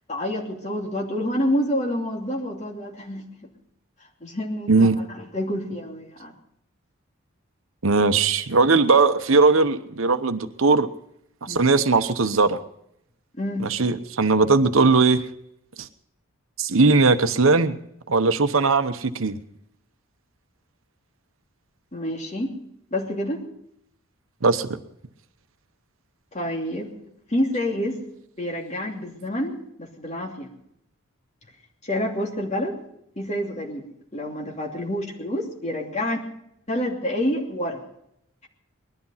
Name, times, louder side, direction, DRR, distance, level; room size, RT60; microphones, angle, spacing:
voice 1, 0.1-3.5 4.2-6.3 11.5-11.7 13.4-13.7 21.9-22.5 22.9-23.4 26.3-26.9 27.3-28.0 28.4-30.5 31.8-32.8 33.2-33.8 34.1-36.2 36.7-37.8, left 1 dB, 35° left, 0 dB, 2.9 m, -28 dB
voice 2, 7.8-10.9 11.4-12.6 13.6-15.2 15.8-15.9 16.6-17.7 18.1-19.4 24.4-24.7, right 3 dB, 75° right, 10 dB, 1.0 m, -19 dB
20.0 x 12.5 x 5.7 m, 0.76 s
head